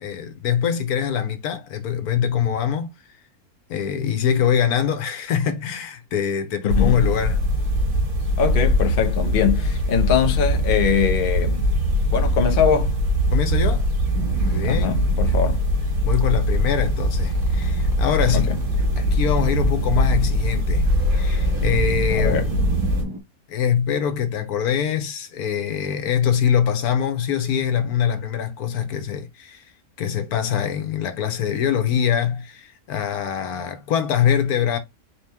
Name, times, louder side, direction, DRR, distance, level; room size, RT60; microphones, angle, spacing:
voice 1, 0.0-2.9 3.7-7.4 13.3-13.9 14.3-15.0 16.0-18.6 19.0-22.5 23.5-29.7 30.0-34.8, left 8 dB, 85° left, 1.3 m, -23 dB
voice 2, 6.6-7.0 8.4-11.7 12.1-13.0 14.6-15.6 18.3-18.4 22.1-22.5, left 8 dB, 45° left, 0.8 m, -22 dB
sound 1, 6.7-23.0, equal, 70° right, 2.3 m, -21 dB
Boat Water vehicle, 14.1-23.2, right 2 dB, 20° right, 0.6 m, -36 dB
4.3 x 3.0 x 3.4 m
omnidirectional pair, 1.6 m